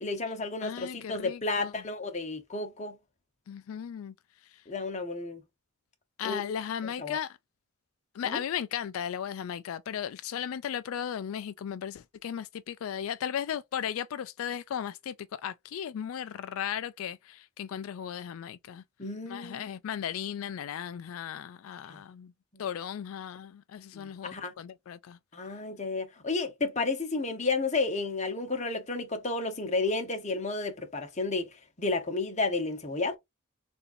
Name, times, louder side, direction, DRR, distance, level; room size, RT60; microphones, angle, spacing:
voice 1, 0.0-3.0 4.7-5.4 6.2-6.5 6.8-7.2 8.2-8.4 19.0-19.6 21.9-22.0 22.5-22.6 23.9-24.5 25.3-31.5 31.8-33.2, left 3 dB, 35° left, 1.1 m, -32 dB
voice 2, 0.6-1.7 3.5-4.1 4.5-4.6 6.2-7.4 8.1-18.8 19.3-22.3 22.6-25.2, left 9 dB, 85° left, 0.3 m, -36 dB
6.8 x 2.7 x 2.6 m
head